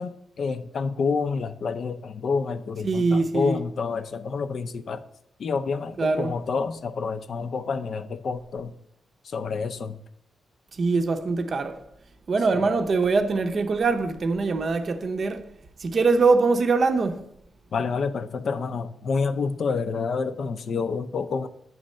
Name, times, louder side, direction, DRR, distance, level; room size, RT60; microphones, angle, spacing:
voice 1, 0.0-5.0 5.4-8.7 9.2-10.0 17.7-21.5, left 5 dB, 55° left, 0.5 m, -28 dB
voice 2, 2.8-3.6 6.0-6.3 10.8-11.8 12.3-15.4 15.8-17.2, right 4 dB, 45° right, 0.6 m, -23 dB
8.9 x 3.2 x 6.3 m
wide cardioid pair, 125°, 0 cm